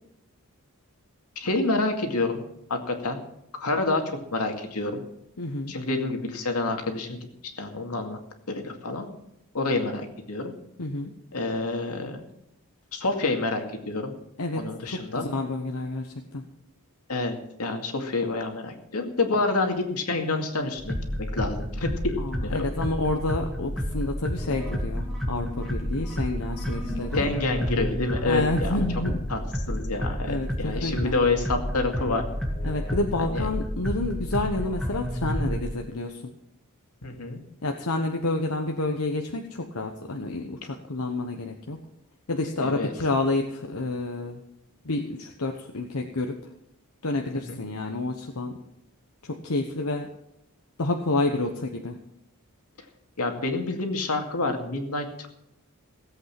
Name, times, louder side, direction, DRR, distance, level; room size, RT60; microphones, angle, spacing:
voice 1, 1.4-2.4 2.7-3.2 3.6-5.0 5.7-7.3 7.6-8.2 8.5-9.1 9.5-10.5 11.3-12.2 12.9-14.1 14.5-15.3 17.1-21.0 21.3-22.6 27.1-28.8 29.3-29.4 29.7-32.2 33.2-33.5 37.0-37.4 42.6-42.9 47.5-47.6 53.2-55.3, left 3 dB, 90° left, 4 dB, 2.2 m, -28 dB
voice 2, 5.4-5.7 10.8-11.1 14.4-14.6 14.9-16.4 22.2-27.3 28.2-29.1 30.3-30.5 30.8-31.1 32.6-36.3 37.6-41.8 42.3-44.4 44.8-46.3 47.0-48.5 49.2-50.1 50.8-52.0, left 2 dB, 70° left, 3 dB, 1.1 m, -29 dB
sound 1, 20.8-35.6, equal, ahead, 2.0 m, -30 dB
17.0 x 8.3 x 5.9 m, 0.80 s
head